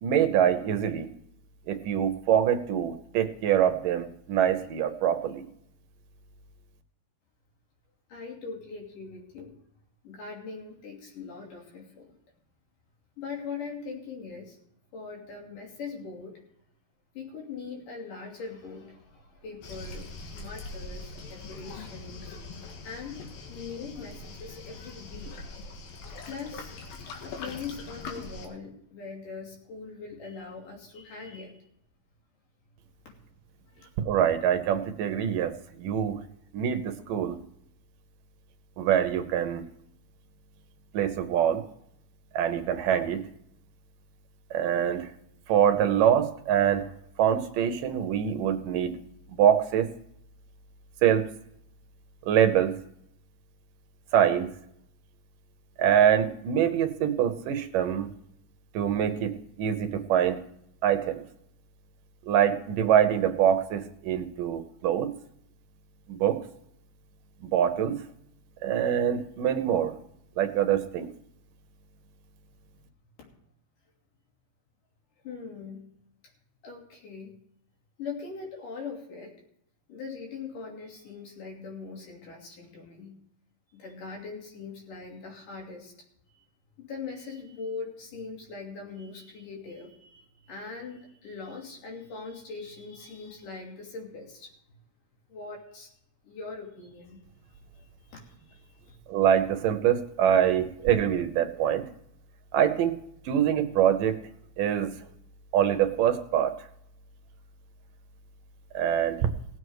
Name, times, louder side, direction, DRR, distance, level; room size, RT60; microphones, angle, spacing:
voice 1, 0.0-1.1 1.7-5.4 34.1-36.2 36.5-37.4 38.8-39.6 40.9-41.6 42.3-43.2 44.5-45.1 45.5-46.9 47.2-49.0 49.3-49.9 51.0-51.3 52.2-52.8 54.1-54.5 55.8-58.1 58.7-60.4 60.8-61.2 62.3-65.1 66.1-66.4 67.4-68.0 68.6-69.9 70.4-71.1 99.1-101.8 102.5-103.0 103.3-104.2 104.6-104.9 105.5-106.5 108.7-109.3, right 9 dB, 75° right, 8 dB, 2.5 m, -24 dB
voice 2, 8.1-9.5 10.0-12.1 13.2-14.6 14.9-16.3 17.1-22.4 22.8-23.2 23.5-25.4 26.3-26.8 27.2-31.6 33.7-33.9 73.2-73.3 75.2-75.8 76.6-77.3 78.0-79.3 79.9-83.2 83.7-85.9 86.3-86.4 86.8-94.5 95.3-95.9 96.2-97.2 97.5-99.0, left 4 dB, 65° left, -1 dB, 4.4 m, -41 dB
Waves surf, 19.6-28.5, left 3 dB, 85° left, 3.6 m, -42 dB
18.0 x 7.8 x 4.8 m, 0.73 s
omnidirectional pair, 4.0 m